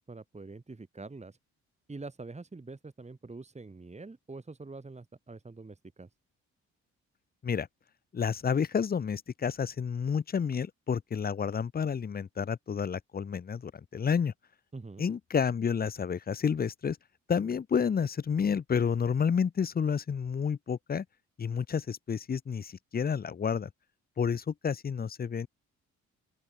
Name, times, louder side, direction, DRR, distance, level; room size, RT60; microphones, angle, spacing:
voice 1, 0.0-1.4 1.9-6.1 14.7-15.1, right 3 dB, 20° right, 3.0 m, -45 dB
voice 2, 8.1-14.3 15.0-17.0 17.3-21.0 21.4-23.7 24.2-25.5, left 6 dB, 30° left, 0.7 m, -30 dB
open air
supercardioid pair, 70°, 31 cm